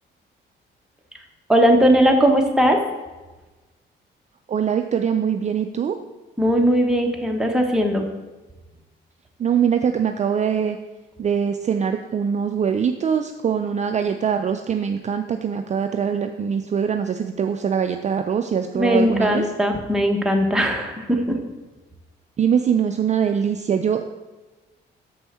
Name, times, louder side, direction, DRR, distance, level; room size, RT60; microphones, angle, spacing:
voice 1, 1.5-2.8 6.4-8.1 18.7-21.4, equal, 5° right, 1 dB, 1.1 m, -18 dB
voice 2, 4.5-6.0 9.4-10.8 11.2-19.4 22.4-24.1, right 7 dB, 35° right, 6 dB, 0.4 m, -23 dB
7.0 x 5.4 x 4.3 m, 1.2 s
cardioid pair, 90°, 20 cm